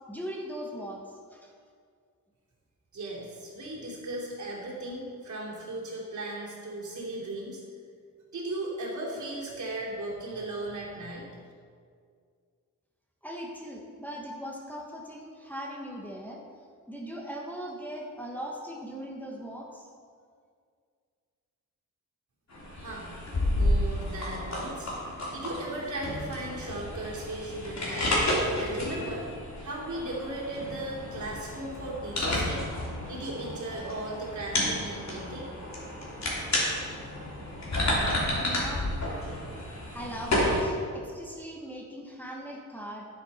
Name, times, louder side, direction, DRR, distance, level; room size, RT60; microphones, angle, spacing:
voice 1, 0.1-1.5 13.2-16.4 16.9-19.9 38.4-39.2 39.9-43.1, equal, 5° left, -2 dB, 1.2 m, -39 dB
voice 2, 2.9-7.6 8.3-11.3 22.8-23.1 23.5-24.9 25.3-28.2 28.5-29.3 29.6-32.7 33.1-35.5, right 2 dB, 60° right, -5 dB, 3.1 m, -37 dB
sound 1, 22.5-40.6, left 1 dB, 55° left, 3.1 m, -31 dB
10.5 x 9.7 x 4.2 m, 2.1 s
wide cardioid pair, 120°, 33 cm